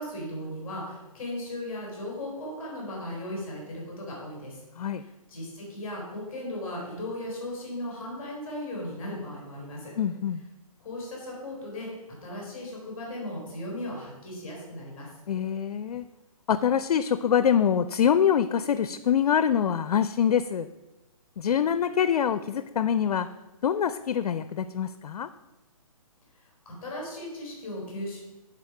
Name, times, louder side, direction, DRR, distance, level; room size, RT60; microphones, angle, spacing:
voice 1, 0.0-4.6 4.9-9.9 10.8-12.0 12.2-15.1 26.3-28.2, left 1 dB, 5° left, -3 dB, 2.8 m, -37 dB
voice 2, 10.0-10.4 15.3-16.1 16.5-20.7 21.4-23.3 23.6-25.3, left 8 dB, 80° left, 12 dB, 0.4 m, -25 dB
9.8 x 3.9 x 4.8 m, 1.0 s
hypercardioid pair, 170°, 19 cm